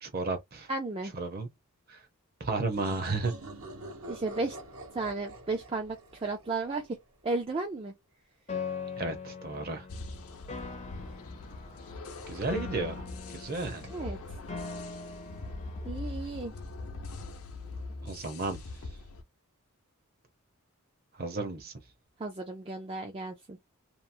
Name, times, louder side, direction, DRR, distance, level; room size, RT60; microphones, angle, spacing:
voice 1, 0.0-0.7 1.1-1.5 1.9-2.0 2.4-3.3 9.0-9.9 12.3-13.9 18.0-18.6 21.1-21.7, right 3 dB, 45° right, 0.8 m, -33 dB
voice 2, 0.7-1.1 4.1-4.6 4.9-6.8 7.2-7.9 13.9-14.2 15.8-16.5 22.2-23.6, right 3 dB, 25° right, 0.4 m, -34 dB
sound 1, 2.7-7.2, right 2 dB, 70° right, 0.9 m, -46 dB
Piano, 8.5-16.5, left 5 dB, 30° left, 0.5 m, -42 dB
sound 2, 9.9-19.2, left 2 dB, 80° left, 0.6 m, -42 dB
2.9 x 2.0 x 2.6 m
head